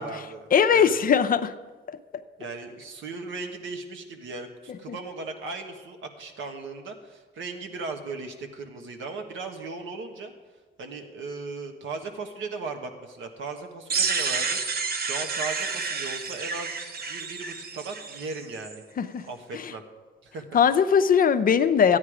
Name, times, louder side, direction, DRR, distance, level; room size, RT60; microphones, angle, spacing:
voice 1, 0.0-1.0 2.4-10.3 10.8-14.6 15.0-16.8 17.1-18.8 19.3-19.8 20.2-20.6, right 3 dB, 80° right, 5 dB, 1.5 m, -37 dB
voice 2, 0.5-1.5 1.9-2.0 19.0-19.2 20.5-22.0, left 7 dB, 45° left, 9 dB, 0.6 m, -20 dB
sound 1, 13.9-18.7, right 5 dB, 50° right, 1.1 m, -30 dB
13.0 x 9.6 x 4.9 m, 1.4 s
cardioid pair, 90°, 20 cm